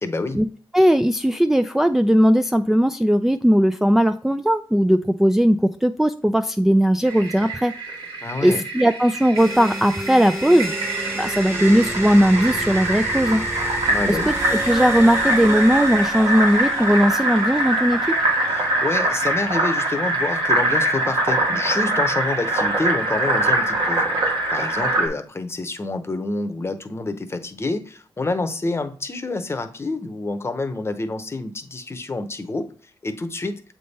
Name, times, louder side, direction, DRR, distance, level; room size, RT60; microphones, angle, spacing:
voice 1, 0.0-0.4 8.2-8.6 13.9-14.3 18.5-24.0 24.5-32.6 33.0-33.5, left 2 dB, 30° left, 9 dB, 0.8 m, -27 dB
voice 2, 0.7-7.7 8.4-10.7 11.2-13.5 14.1-14.3 14.7-18.1, equal, 5° right, 7 dB, 0.3 m, -18 dB
Fill (with liquid), 7.0-25.1, right 1 dB, 80° right, 1.7 m, -23 dB
sound 1, 9.3-19.6, right 1 dB, 25° right, 1.8 m, -33 dB
7.6 x 3.5 x 4.1 m, 0.43 s
cardioid pair, 75°, 9 cm